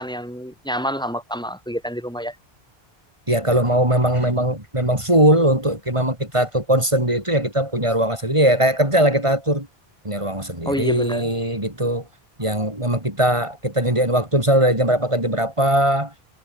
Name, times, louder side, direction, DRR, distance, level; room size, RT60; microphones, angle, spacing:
voice 1, 0.0-2.3 10.6-11.3, equal, 5° left, 7.8 m, -27 dB
voice 2, 3.3-9.7 10.0-12.1 12.4-16.1, right 1 dB, 30° right, 5.9 m, -20 dB
omnidirectional pair, 1.0 m